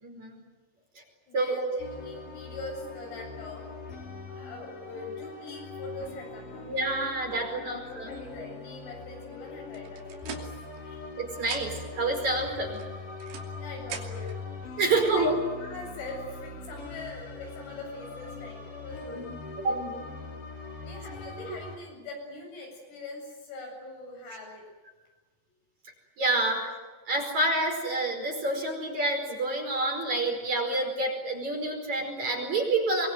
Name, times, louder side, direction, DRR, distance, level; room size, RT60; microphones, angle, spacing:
voice 1, 0.0-0.3 1.0-1.1 1.3-1.8 6.7-8.1 11.2-12.8 14.8-15.3 19.6-20.2 26.2-26.8 27.1-33.1, right 2 dB, 35° right, 2 dB, 5.9 m, -28 dB
voice 2, 1.3-3.9 4.3-6.7 7.4-10.4 10.9-11.1 13.5-14.5 14.9-15.3 15.6-19.2 20.8-24.6, left 2 dB, 90° left, 1 dB, 10.5 m, -42 dB
sound 1, 1.8-21.8, left 3 dB, 40° left, 4.7 m, -42 dB
sound 2, 9.7-11.1 11.4-12.0 12.7-14.4, right 7 dB, 85° right, 5.6 m, -42 dB
24.0 x 23.5 x 9.5 m, 1.3 s
omnidirectional pair, 5.9 m